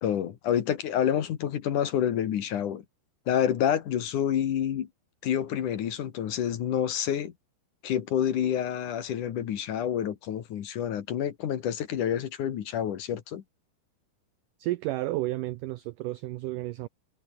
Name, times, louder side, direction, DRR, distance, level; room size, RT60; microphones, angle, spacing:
voice 1, 0.0-2.8 3.3-4.9 5.2-7.3 7.8-13.4, left 9 dB, 60° left, 2.8 m, -28 dB
voice 2, 14.6-16.9, right 17 dB, 85° right, 1.8 m, -32 dB
omnidirectional pair, 4.5 m